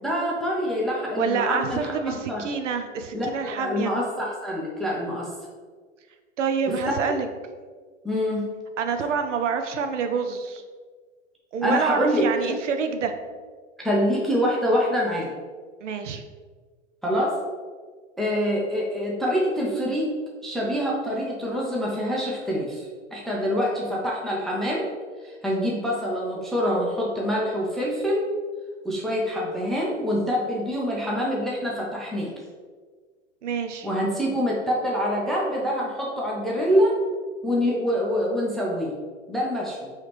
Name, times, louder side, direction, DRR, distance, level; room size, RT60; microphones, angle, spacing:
voice 1, 0.0-2.5 3.1-5.3 6.7-6.8 8.0-8.5 11.6-12.2 13.8-15.3 17.0-17.3 18.2-20.1 20.4-24.9 25.2-28.3 28.8-32.3 33.8-37.0 37.4-38.9 39.3-39.9, equal, ahead, -4 dB, 0.4 m, -25 dB
voice 2, 1.2-3.9 6.4-7.3 8.8-10.6 11.5-13.1 15.8-16.2 33.4-33.9, right 6 dB, 75° right, 7 dB, 0.5 m, -27 dB
4.8 x 3.2 x 2.9 m, 1.5 s
hypercardioid pair, 105°, 36 cm